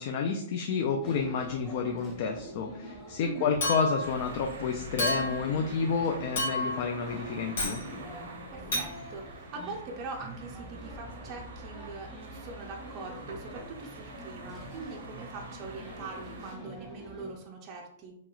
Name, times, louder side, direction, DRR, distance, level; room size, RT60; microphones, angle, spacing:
voice 1, 0.0-7.8, left 5 dB, 50° left, 3 dB, 0.3 m, -30 dB
sound 1, 1.0-17.3, equal, 10° left, 1.0 m, -46 dB
voice 2, 3.2-3.5 8.5-18.1, right 4 dB, 35° right, 0 dB, 0.4 m, -42 dB
Chink clink, 3.6-4.1 5.0-5.4 6.4-6.9 7.6-7.8 8.7-8.9, left 1 dB, 75° left, 1.1 m, -30 dB
sound 2, 4.0-16.5, right 2 dB, 85° right, 0.6 m, -46 dB
2.9 x 2.8 x 2.3 m, 0.73 s
hypercardioid pair, 140°, 0 cm